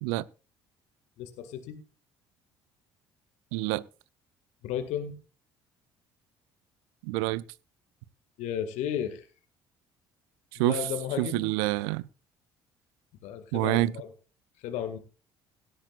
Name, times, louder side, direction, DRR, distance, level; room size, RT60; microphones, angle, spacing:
voice 1, 1.2-1.8 4.6-5.1 8.4-9.3 10.6-11.4 13.2-14.1 14.6-15.0, left 9 dB, 65° left, 2.0 m, -33 dB
voice 2, 3.5-3.8 7.0-7.4 10.6-10.8 11.2-12.0 13.5-13.9, right 19 dB, 70° right, 0.6 m, -27 dB
17.5 x 12.5 x 2.5 m
hypercardioid pair, 55°, 13 cm